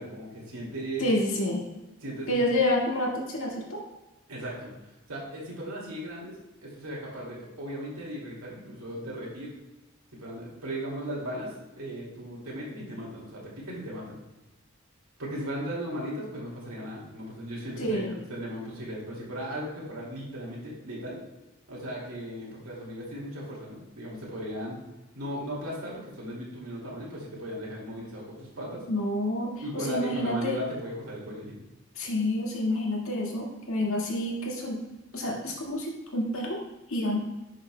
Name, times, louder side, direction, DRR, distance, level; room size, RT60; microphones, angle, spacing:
voice 1, 0.0-1.1 2.0-2.4 4.3-4.7 5.1-6.4 6.6-9.5 10.1-14.2 15.2-21.2 21.7-24.8 25.1-28.8 29.6-31.5, equal, 85° right, -4 dB, 2.3 m, -37 dB
voice 2, 1.0-1.6 2.3-3.8 17.8-18.1 28.9-30.6 32.0-34.8 35.1-36.6 36.9-37.2, left 1 dB, 75° left, -2 dB, 1.8 m, -28 dB
11.0 x 6.3 x 2.2 m, 1.1 s
head